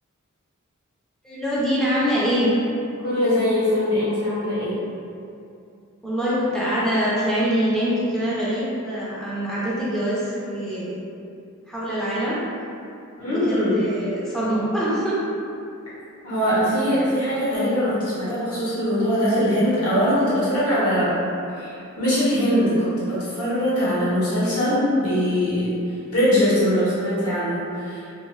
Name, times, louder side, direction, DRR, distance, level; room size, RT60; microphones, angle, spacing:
voice 1, 1.2-2.5 6.0-10.9 11.7-12.4 13.2-15.2, equal, 5° left, -9 dB, 0.4 m, -24 dB
voice 2, 3.0-4.8 13.2-13.8 16.2-21.1 21.5-25.7 26.1-28.0, equal, 80° left, -10 dB, 1.1 m, -22 dB
2.6 x 2.0 x 3.0 m, 2.6 s
head